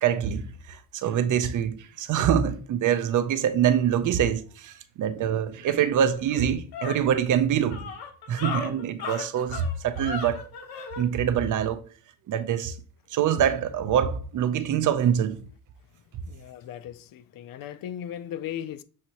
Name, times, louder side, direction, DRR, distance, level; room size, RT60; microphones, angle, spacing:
voice 1, 0.0-7.9 8.3-10.4 11.0-11.8 12.3-12.8 13.1-15.4, right 9 dB, 55° right, 0.6 m, -25 dB
sound 1, 5.6-5.7 6.1-11.1, left 6 dB, 85° left, 1.0 m, -36 dB
voice 2, 16.2-18.8, left 10 dB, 65° left, 0.5 m, -37 dB
6.5 x 2.7 x 2.9 m
cardioid pair, 130°, 37 cm